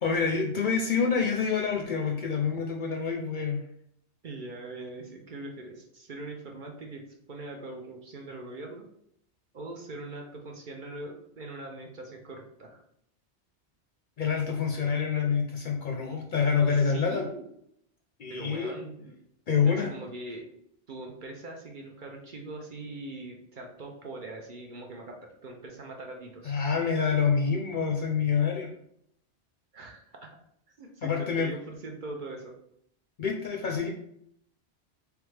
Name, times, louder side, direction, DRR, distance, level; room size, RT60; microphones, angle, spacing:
voice 1, 0.0-3.6 14.2-17.2 18.2-18.7 19.5-19.9 26.4-28.7 31.0-31.5 33.2-33.9, left 6 dB, 55° left, 1 dB, 0.6 m, -27 dB
voice 2, 4.2-7.0 7.3-8.8 9.5-12.8 16.7-17.4 18.3-19.1 19.6-20.4 20.9-25.2 25.4-26.5 29.7-30.4 30.8-32.5, right 2 dB, 55° right, 1 dB, 0.7 m, -41 dB
3.4 x 3.3 x 3.2 m, 0.71 s
omnidirectional pair, 1.2 m